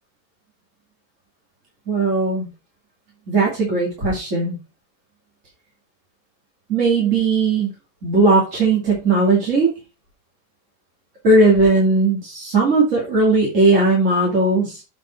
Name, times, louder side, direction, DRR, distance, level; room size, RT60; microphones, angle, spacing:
voice 1, 1.9-2.5 3.3-4.5 6.7-7.7 8.0-9.7 11.2-14.8, right 3 dB, 45° right, -4 dB, 2.9 m, -17 dB
7.6 x 5.2 x 5.8 m, 0.29 s
omnidirectional pair, 1.8 m